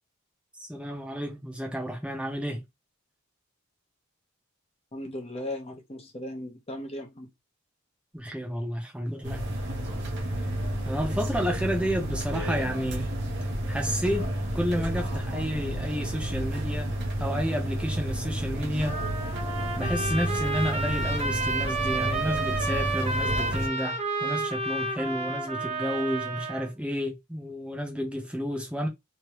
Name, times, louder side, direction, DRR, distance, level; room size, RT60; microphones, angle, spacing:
voice 1, 0.6-2.6 8.1-9.4 10.8-13.1 13.7-16.9 17.2-19.0 19.7-28.9, equal, 5° right, 0.9 m, -31 dB
voice 2, 4.9-7.3, left 1 dB, 30° left, 1.0 m, -37 dB
sound 1, 9.2-23.7, right 1 dB, 55° right, 1.0 m, -31 dB
Trumpet, 18.8-26.7, right 2 dB, 30° right, 1.0 m, -31 dB
3.2 x 3.2 x 3.0 m
head